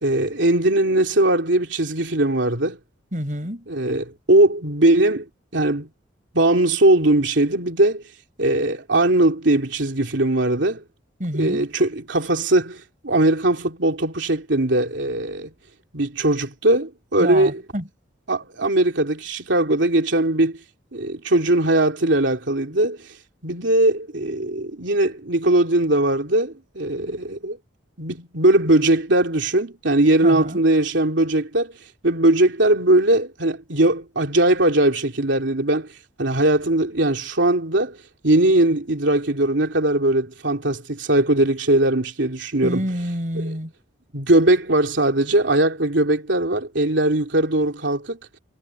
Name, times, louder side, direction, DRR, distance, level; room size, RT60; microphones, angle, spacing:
voice 1, 0.0-2.8 3.7-5.9 6.3-8.0 8.4-10.8 11.3-15.5 15.9-17.6 18.3-20.6 20.9-23.0 23.4-27.6 28.0-31.7 32.0-35.9 36.2-38.0 38.2-42.8 43.4-43.5 44.1-48.2, right 1 dB, 70° right, 3.1 m, -20 dB
voice 2, 3.1-3.6 11.2-11.7 17.2-17.9 30.2-30.6 42.6-43.7, equal, 40° right, 6.8 m, -27 dB
head